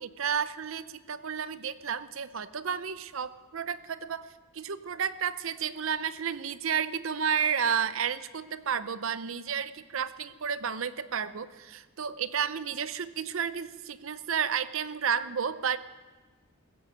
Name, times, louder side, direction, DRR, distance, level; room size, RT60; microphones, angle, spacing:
voice 1, 0.0-4.3 4.5-15.8, right 7 dB, 65° right, 14 dB, 0.6 m, -31 dB
16.0 x 15.5 x 5.1 m, 1.3 s
head